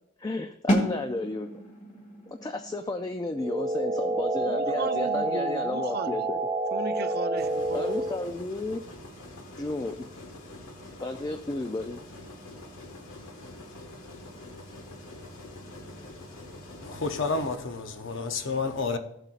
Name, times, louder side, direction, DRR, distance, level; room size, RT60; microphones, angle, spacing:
voice 1, 0.2-1.5 2.3-6.4 7.7-8.8 9.6-10.0 11.0-12.0, left 2 dB, 20° left, 0.3 m, -32 dB
sound 1, 0.7-6.4, equal, 35° left, 1.5 m, -33 dB
sound 2, 3.3-8.3, right 2 dB, 20° right, 1.0 m, -29 dB
voice 2, 4.4-6.3 6.7-8.1, right 5 dB, 45° right, 0.5 m, -37 dB
sound 3, 7.3-17.6, left 1 dB, 75° left, 1.5 m, -45 dB
voice 3, 16.8-19.0, left 4 dB, 55° left, 0.7 m, -30 dB
14.5 x 7.8 x 2.5 m
head